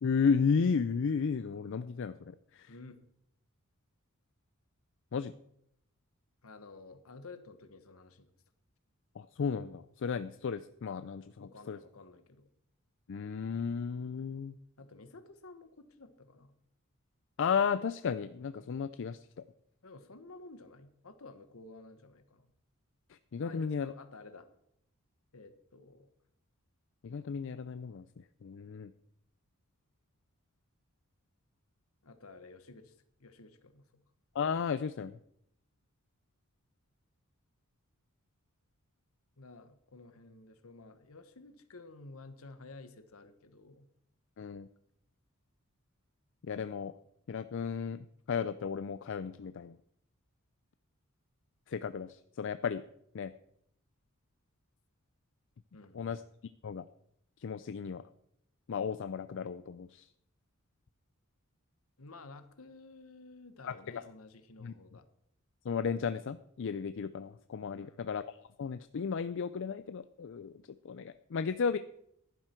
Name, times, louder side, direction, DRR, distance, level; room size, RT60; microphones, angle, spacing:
voice 1, 0.0-2.7 5.1-5.3 9.2-11.8 13.1-14.6 17.4-19.4 23.1-23.9 27.0-28.9 34.3-35.1 44.4-44.7 46.4-46.9 47.3-49.8 51.7-52.8 53.1-53.3 55.9-56.2 56.6-56.8 57.4-58.0 58.7-60.1 63.6-64.0 64.6-64.7 65.6-70.5 70.8-71.8, left 6 dB, 60° left, 12 dB, 0.4 m, -34 dB
voice 2, 2.7-3.0 6.4-8.3 11.4-12.5 14.8-16.5 19.8-22.5 23.4-24.5 25.3-26.1 32.0-33.8 39.4-43.9 55.7-56.2 62.0-65.1 67.7-68.1 71.4-71.5, left 3 dB, 80° left, 10 dB, 1.2 m, -52 dB
14.5 x 11.0 x 4.5 m, 0.75 s
head